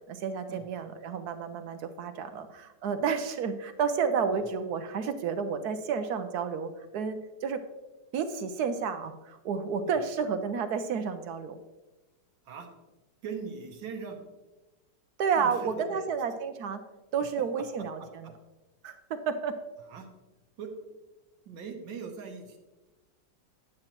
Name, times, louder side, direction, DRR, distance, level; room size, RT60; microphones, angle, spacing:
voice 1, 0.1-7.6 8.1-11.6 15.2-16.8 17.1-18.3 18.8-19.5, right 6 dB, 70° right, 9 dB, 1.0 m, -31 dB
voice 2, 13.2-14.2 15.4-16.1 19.9-20.1 20.6-20.7 21.5-22.6, right 5 dB, 90° right, 1 dB, 1.8 m, -40 dB
9.6 x 8.7 x 2.9 m, 1.1 s
omnidirectional pair, 2.0 m